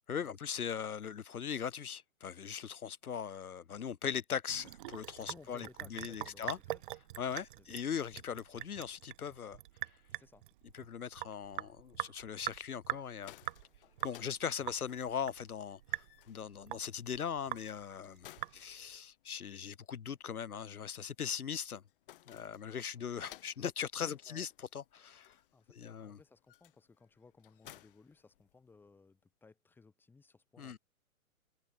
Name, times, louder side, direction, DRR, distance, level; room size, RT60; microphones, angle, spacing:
voice 1, 0.1-6.6 7.2-9.6 10.7-13.3 14.0-16.0 16.3-18.3 18.5-21.8 22.3-25.3 25.7-26.2 30.6-30.8, left 7 dB, 90° left, 1.5 m, -40 dB
Sink (filling or washing) / Drip, 4.5-19.0, right 15 dB, 35° right, 1.2 m, -44 dB
voice 2, 5.1-6.9 7.6-7.8 10.1-10.4 24.0-24.5 25.5-30.8, left 4 dB, 5° left, 1.5 m, -60 dB
sound 1, 13.0-28.9, left 15 dB, 40° left, 1.8 m, -61 dB
hypercardioid pair, 150°, 43 cm